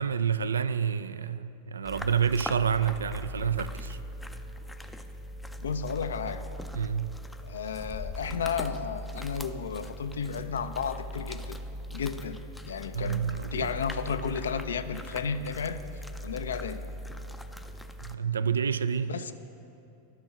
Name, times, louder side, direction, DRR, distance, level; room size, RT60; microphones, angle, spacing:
voice 1, 0.0-4.0 6.7-7.2 12.9-13.7 18.0-19.2, right 7 dB, 70° right, 13 dB, 0.3 m, -28 dB
sound 1, 1.8-18.1, equal, 5° left, 0.5 m, -40 dB
voice 2, 5.6-6.4 7.4-11.6 11.9-15.8 16.2-16.8 19.1-19.3, left 6 dB, 65° left, 11 dB, 0.4 m, -33 dB
11.5 x 6.2 x 6.5 m, 2.8 s
figure-of-eight pair, 90°, 0 cm